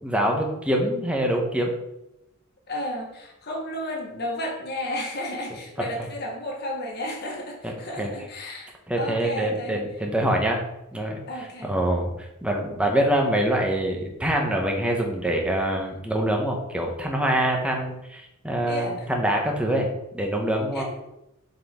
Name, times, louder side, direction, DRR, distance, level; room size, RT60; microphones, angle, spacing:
voice 1, 0.0-1.7 5.8-5.9 7.6-8.1 8.9-10.6 10.9-12.1 12.4-19.9 20.1-20.8, right 1 dB, 5° right, 1 dB, 1.0 m, -25 dB
voice 2, 2.7-8.7 9.0-9.8 11.3-11.7 18.7-19.1 20.7-20.8, left 1 dB, 50° left, -1 dB, 1.4 m, -32 dB
7.4 x 4.3 x 3.7 m, 0.88 s
head